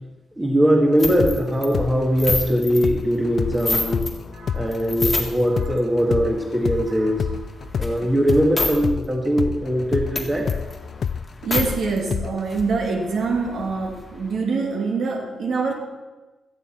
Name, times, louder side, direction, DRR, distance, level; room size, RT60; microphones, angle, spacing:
voice 1, 0.4-4.0 4.5-7.2 7.8-10.5, equal, 10° right, 0 dB, 1.7 m, -21 dB
sound 1, 1.0-4.2 4.5-5.6 6.0-8.8 9.0-9.1 9.4-11.7 12.1-12.2 12.4-14.4, left 2 dB, 15° left, 2.0 m, -30 dB
sound 2, 1.2-9.1 9.4-12.6, left 7 dB, 45° left, 0.4 m, -28 dB
voice 2, 4.3-4.8 5.5-5.6 11.4-15.7, right 4 dB, 55° right, 1 dB, 2.6 m, -25 dB
17.5 x 13.5 x 4.4 m, 1.2 s
wide cardioid pair, 180°, 0 cm